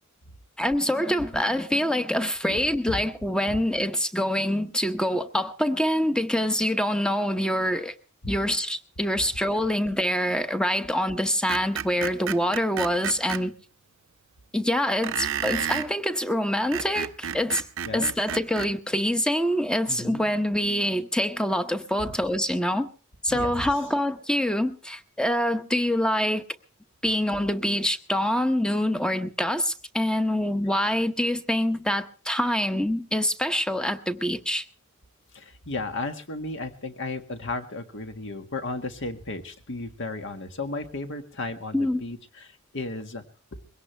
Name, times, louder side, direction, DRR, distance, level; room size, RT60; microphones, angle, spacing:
voice 1, 0.6-7.9 8.3-13.5 14.5-17.6 17.9-22.9 23.2-26.4 27.0-34.7 41.7-42.0, equal, 5° left, 0.8 m, -25 dB
Screech, 11.5-13.4 15.0-15.9 16.5-18.7, right 8 dB, 65° right, 0.7 m, -31 dB
voice 2, 19.9-20.3 22.0-22.1 23.3-23.7 35.3-43.2, left 2 dB, 60° left, 1.7 m, -34 dB
22.0 x 17.5 x 3.3 m
head